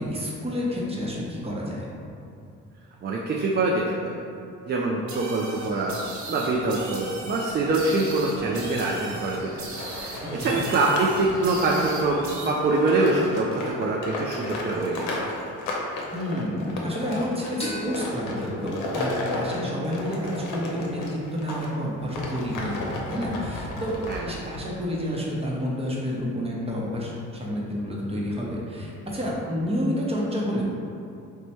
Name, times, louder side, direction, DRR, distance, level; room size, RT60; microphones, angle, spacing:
voice 1, 0.0-1.9 10.4-10.6 16.0-30.6, equal, 20° right, -4 dB, 0.8 m, -29 dB
voice 2, 3.0-4.1 4.7-6.0 6.3-9.5 9.9-15.2 24.1-24.2, right 2 dB, 35° right, -2 dB, 0.4 m, -24 dB
sound 1, 5.1-12.5, right 2 dB, 75° right, 0.8 m, -38 dB
sound 2, 9.7-21.7 22.1-24.6, left 2 dB, 90° left, 0.6 m, -34 dB
sound 3, 17.6-21.0, equal, 20° left, 1.1 m, -39 dB
3.1 x 2.2 x 4.2 m, 2.6 s
cardioid pair, 90°, 30 cm